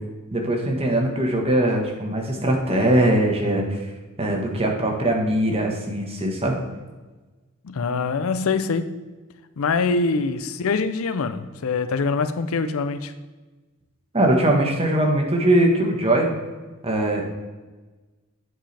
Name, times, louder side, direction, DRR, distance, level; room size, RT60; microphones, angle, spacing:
voice 1, 0.3-3.6 4.2-6.5 14.1-16.3 16.8-17.2, right 1 dB, 25° right, 1 dB, 1.3 m, -21 dB
voice 2, 7.6-9.0 9.6-13.1, left 4 dB, 70° left, 11 dB, 0.5 m, -24 dB
7.8 x 7.5 x 3.3 m, 1.2 s
head